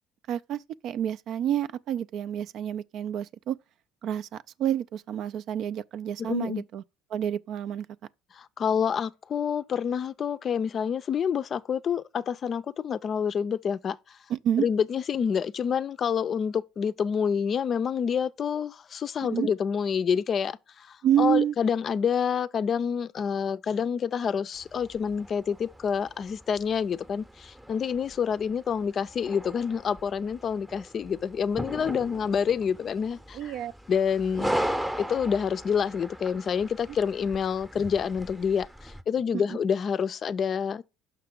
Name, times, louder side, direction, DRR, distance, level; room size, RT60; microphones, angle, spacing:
voice 1, 0.3-3.6 4.0-6.8 7.1-7.9 14.3-14.7 19.3-19.5 21.0-21.5 33.3-33.7, right 10 dB, 60° right, 0.3 m, -28 dB
voice 2, 6.2-6.6 8.3-14.2 14.6-33.6 33.9-34.5 35.0-40.8, left 7 dB, 45° left, 0.4 m, -28 dB
sound 1, 24.5-39.0, equal, 10° right, 0.7 m, -38 dB
5.9 x 5.7 x 3.7 m
hypercardioid pair, 70°, 0 cm